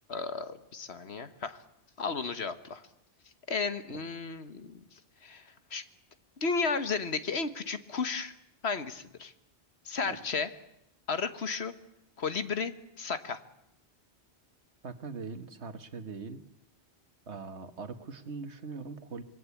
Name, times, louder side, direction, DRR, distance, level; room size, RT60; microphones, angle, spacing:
voice 1, 0.1-1.6 2.0-2.8 3.5-4.8 5.2-5.8 6.4-8.3 8.6-9.3 9.8-10.5 11.1-11.7 12.2-13.4, left 4 dB, 70° left, 11 dB, 1.6 m, -33 dB
voice 2, 14.8-16.4 17.3-19.2, right 4 dB, 85° right, 10 dB, 1.8 m, -41 dB
26.5 x 22.0 x 8.4 m, 0.79 s
omnidirectional pair, 1.1 m